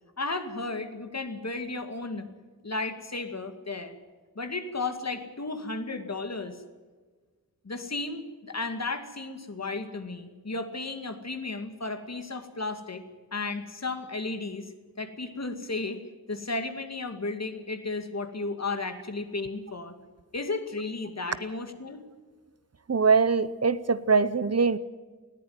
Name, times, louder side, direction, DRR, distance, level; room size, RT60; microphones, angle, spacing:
voice 1, 0.2-2.3 2.6-4.0 4.4-6.6 7.6-13.0 13.3-14.7 15.0-16.0 16.3-20.0 20.3-22.0, left 3 dB, 50° left, 7 dB, 2.3 m, -34 dB
voice 2, 22.9-24.8, right 5 dB, 45° right, 15 dB, 0.8 m, -22 dB
20.0 x 15.0 x 9.6 m, 1.4 s
wide cardioid pair, 80°, 35 cm